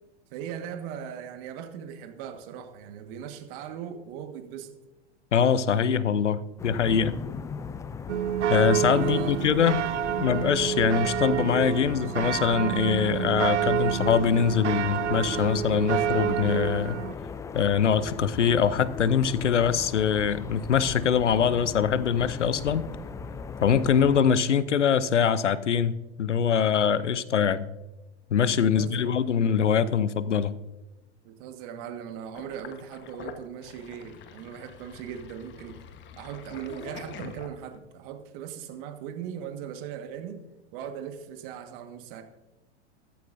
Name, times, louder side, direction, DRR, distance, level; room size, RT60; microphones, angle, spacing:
voice 1, 0.3-4.7 8.9-9.4 28.7-29.2 31.2-35.8 36.2-40.4 40.7-42.2, right 9 dB, 50° right, 7 dB, 1.6 m, -39 dB
voice 2, 5.3-7.2 8.5-9.8 10.2-17.0 17.5-22.8 23.6-27.7 28.3-30.5, left 7 dB, 90° left, 17 dB, 0.7 m, -23 dB
sound 1, 6.6-24.2, left 5 dB, 10° left, 0.4 m, -38 dB
sound 2, 8.1-17.1, right 10 dB, 85° right, 0.6 m, -28 dB
Sink (filling or washing), 32.3-37.9, left 7 dB, 35° left, 1.3 m, -45 dB
14.5 x 14.0 x 2.7 m, 1.0 s
hypercardioid pair, 100°, 35 cm